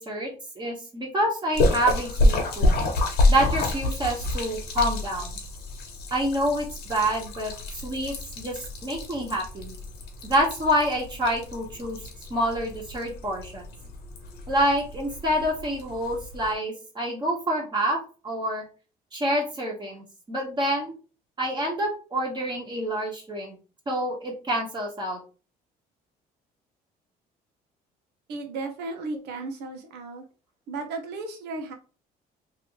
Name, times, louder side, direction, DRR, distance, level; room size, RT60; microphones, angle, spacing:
voice 1, 0.0-2.7 3.3-5.3 6.1-9.7 10.2-12.0 12.3-13.6 14.5-18.0 18.2-18.6 19.1-20.9 21.4-23.6 23.9-25.2, equal, 25° right, -1 dB, 1.4 m, -27 dB
Splash splatter, 1.5-16.5, left 2 dB, 75° left, 1.1 m, -28 dB
voice 2, 28.3-30.2 30.7-31.7, right 3 dB, 80° right, 4 dB, 1.0 m, -34 dB
3.1 x 2.7 x 3.1 m, 0.34 s
cardioid pair, 110°, 17 cm